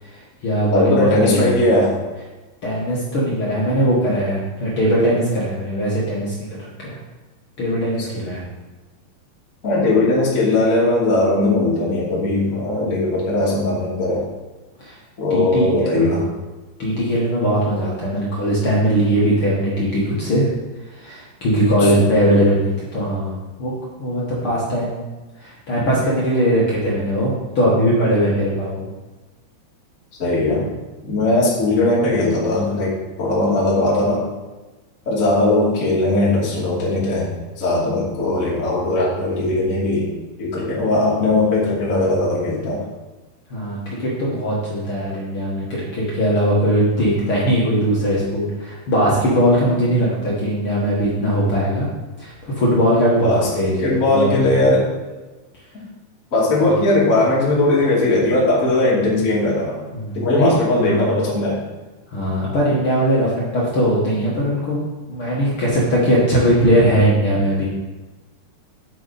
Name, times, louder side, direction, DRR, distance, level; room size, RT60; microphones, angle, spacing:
voice 1, 0.0-1.6 2.6-7.0 7.6-8.4 14.8-15.0 15.3-16.2 16.8-20.6 20.9-23.7 24.0-25.0 25.4-28.9 43.5-51.9 52.2-54.3 59.9-60.5 60.8-61.1 62.1-64.8 65.1-67.7, equal, 60° left, -6 dB, 1.4 m, -20 dB
voice 2, 0.7-2.0 9.6-14.2 15.2-16.2 21.8-22.1 30.2-30.7 31.0-34.2 35.1-37.3 37.6-40.1 40.4-42.8 53.2-53.5 53.8-54.9 56.3-59.8 60.1-61.6, left 2 dB, 25° left, -6 dB, 2.3 m, -19 dB
9.3 x 8.1 x 4.2 m, 1.2 s
omnidirectional pair, 5.1 m